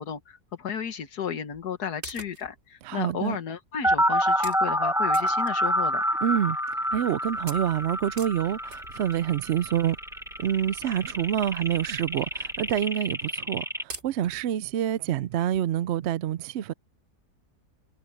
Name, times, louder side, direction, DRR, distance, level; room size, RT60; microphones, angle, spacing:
voice 1, 0.0-6.1, left 7 dB, 75° left, 2.0 m, -33 dB
sound 1, 1.5-1.7 2.0-2.6 3.3-3.4 3.9-4.1 4.4-4.7 5.1-6.0 6.4-6.5 6.9-7.1 7.5-9.3 10.3-10.4 11.0-11.1 11.3-11.6 11.9-12.0 12.3-12.4 13.1-13.4 13.9-14.6 15.1-15.2 15.5-15.6, right 3 dB, 45° right, 3.0 m, -43 dB
voice 2, 2.8-3.4 6.2-6.6 6.9-10.0 10.4-16.7, right 10 dB, 70° right, 0.6 m, -27 dB
sound 2, 3.8-13.8, equal, ahead, 0.8 m, -27 dB
sound 3, 7.2-12.8, right 2 dB, 90° right, 7.5 m, -54 dB
omnidirectional pair, 1.7 m